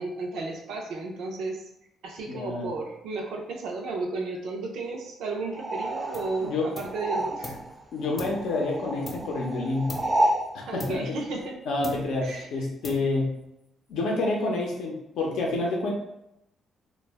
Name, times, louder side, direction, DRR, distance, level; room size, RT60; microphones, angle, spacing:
voice 1, 0.0-1.6 2.0-7.5 10.7-11.6 12.2-12.5, right 3 dB, 80° right, 1 dB, 0.5 m, -33 dB
voice 2, 2.3-2.7 6.4-6.7 7.9-9.9 10.5-11.2 11.7-13.3 13.9-15.9, left 2 dB, 80° left, -1 dB, 0.6 m, -28 dB
sound 1, 5.5-10.5, right 1 dB, 25° right, 0.3 m, -30 dB
sound 2, 6.1-6.4 6.7-7.7 8.2-9.5 9.9-10.3 10.8-11.5 11.8-12.4 12.8-13.4, left 2 dB, 35° left, 0.6 m, -41 dB
2.2 x 2.0 x 3.4 m, 0.83 s
cardioid pair, 90°, 0 cm